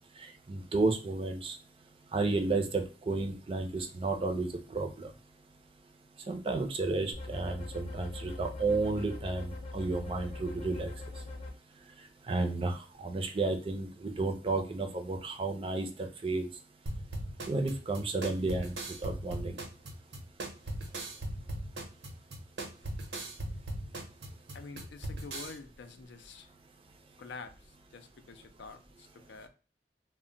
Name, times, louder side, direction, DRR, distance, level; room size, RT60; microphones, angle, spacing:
voice 1, 0.2-1.6 2.1-5.1 6.3-10.9 12.3-15.9 16.2-16.5 17.5-18.7 19.0-19.6, right 3 dB, 30° right, 5 dB, 0.4 m, -32 dB
sound 1, 7.1-11.5, left 2 dB, 35° left, 0.7 m, -42 dB
sound 2, 16.9-25.5, right 1 dB, 85° right, 0.8 m, -39 dB
voice 2, 24.5-26.5 27.2-29.5, left 4 dB, 80° left, 8 dB, 0.4 m, -47 dB
2.1 x 2.1 x 3.7 m, 0.35 s
head